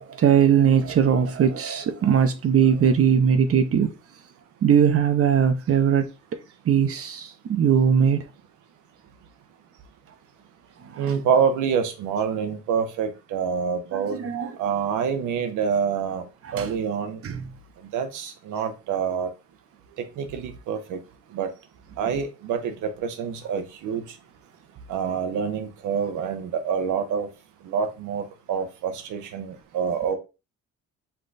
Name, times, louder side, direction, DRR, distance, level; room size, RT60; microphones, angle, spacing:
voice 1, 0.0-3.9 4.6-6.1 6.6-8.2 10.9-11.1 13.9-14.6 16.4-16.7 17.2-17.5, right 8 dB, 50° right, 0.8 m, -20 dB
voice 2, 11.0-14.2 14.6-16.2 16.5-17.2 17.9-19.3 20.2-21.0 21.3-21.5 22.0-24.0 24.9-27.3 27.7-30.2, right 6 dB, 85° right, 0.9 m, -26 dB
5.6 x 2.3 x 4.0 m
cardioid pair, 90°, 30 cm